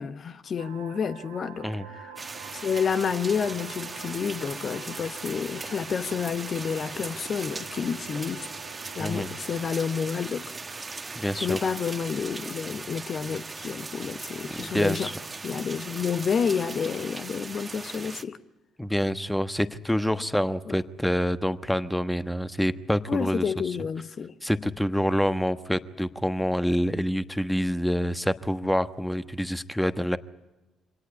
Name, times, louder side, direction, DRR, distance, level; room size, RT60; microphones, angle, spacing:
voice 1, 0.0-2.2 2.6-8.5 9.0-10.5 11.3-15.1 15.4-18.4 20.7-20.8 23.1-24.3, left 6 dB, 45° left, 1.0 m, -29 dB
sound 1, 0.6-9.9, right 8 dB, 80° right, 1.6 m, -47 dB
sound 2, 2.2-18.2, right 3 dB, 25° right, 1.3 m, -39 dB
voice 2, 11.1-11.6 14.5-15.2 18.8-23.5 24.4-30.2, equal, 5° left, 1.2 m, -27 dB
25.5 x 18.0 x 9.6 m
figure-of-eight pair, 50°, 0 cm